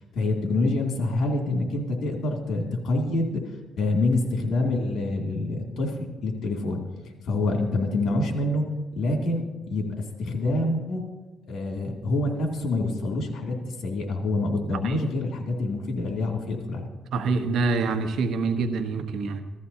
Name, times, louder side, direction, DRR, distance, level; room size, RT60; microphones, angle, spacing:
voice 1, 0.1-3.4 3.8-6.8 7.2-8.6 8.9-11.0 11.5-16.9, left 2 dB, 70° left, 1 dB, 2.5 m, -26 dB
voice 2, 17.1-19.4, right 4 dB, 75° right, 7 dB, 1.1 m, -26 dB
16.0 x 13.5 x 2.8 m, 1.2 s
cardioid pair, 90°, 0 cm